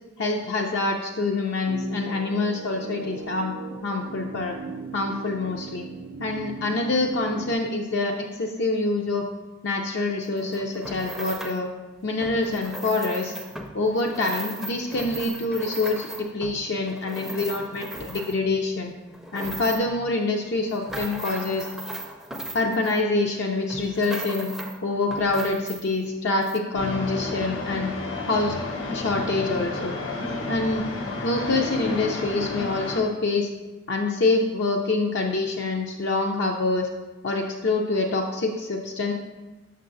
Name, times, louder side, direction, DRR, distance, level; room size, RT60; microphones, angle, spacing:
voice 1, 0.2-3.5 3.8-4.6 4.9-5.9 6.2-9.3 9.6-11.7 12.0-13.3 13.7-18.9 19.3-21.7 22.5-24.5 24.8-27.9 28.2-28.6 28.9-29.9 30.5-30.8 31.2-33.5 33.9-36.9 37.2-39.1, left 3 dB, 60° left, 1 dB, 0.5 m, -26 dB
sound 1, 1.7-7.5, right 5 dB, 75° right, 0.3 m, -39 dB
sound 2, 10.2-11.7 12.1-18.6 19.0-20.0 20.5-23.3 23.7-24.8 25.1-26.1 26.4-26.6, right 1 dB, ahead, 0.4 m, -37 dB
sound 3, 26.7-33.0, left 3 dB, 90° left, 0.8 m, -31 dB
6.6 x 6.2 x 2.6 m, 1.1 s
head